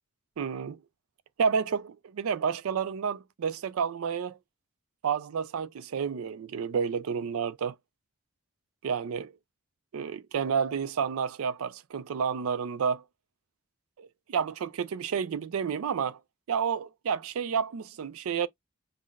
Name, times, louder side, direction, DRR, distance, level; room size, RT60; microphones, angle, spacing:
voice 1, 0.4-0.8 1.4-4.4 5.0-7.8 8.8-9.3 9.9-13.0 14.0-16.2 16.5-18.5, right 6 dB, 85° right, 0.4 m, -30 dB
5.6 x 2.0 x 2.3 m
head